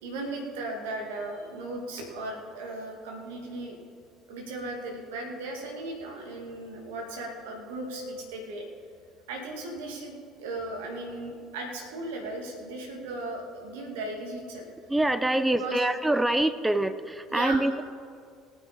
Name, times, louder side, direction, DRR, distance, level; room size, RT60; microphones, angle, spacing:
voice 1, 0.0-3.8 4.3-8.6 9.3-10.1 10.4-14.7 15.6-15.8 17.3-17.7, right 2 dB, 65° right, 1 dB, 2.1 m, -36 dB
voice 2, 14.9-17.8, right 1 dB, 10° right, 12 dB, 0.6 m, -25 dB
18.5 x 8.9 x 4.2 m, 2.2 s
figure-of-eight pair, 60°, 0 cm